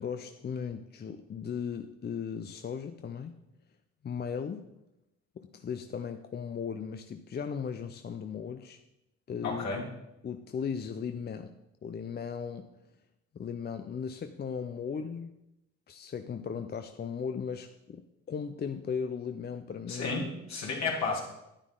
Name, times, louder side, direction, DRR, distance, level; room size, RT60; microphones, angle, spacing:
voice 1, 0.0-3.4 4.0-4.7 5.4-8.8 9.3-9.9 10.2-11.6 11.8-12.7 13.3-15.3 15.9-20.2, left 6 dB, 35° left, 8 dB, 0.5 m, -37 dB
voice 2, 9.4-9.8 19.9-21.2, left 4 dB, 65° left, -2 dB, 2.9 m, -32 dB
9.8 x 9.4 x 3.8 m, 0.87 s
cardioid pair, 90°, 30 cm